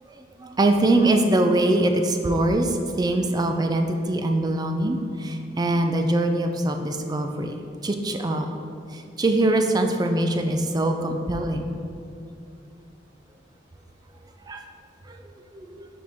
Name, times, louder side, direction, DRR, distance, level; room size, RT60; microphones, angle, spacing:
voice 1, 0.2-7.5 7.8-8.5 8.9-11.7 14.5-14.6 15.1-15.2 15.5-15.9, right 1 dB, 20° right, 5 dB, 0.4 m, -23 dB
6.5 x 5.1 x 3.5 m, 2.5 s
head